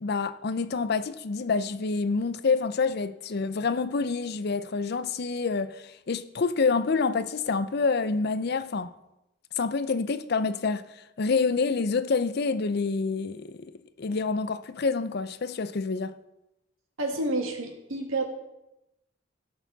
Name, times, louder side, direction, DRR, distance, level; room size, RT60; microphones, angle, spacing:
voice 1, 0.0-8.9 9.6-10.8 11.2-13.7 14.0-16.1, left 4 dB, 50° left, 0.5 m, -27 dB
voice 2, 17.0-18.2, right 2 dB, 85° right, 2.0 m, -29 dB
17.0 x 6.4 x 4.0 m
head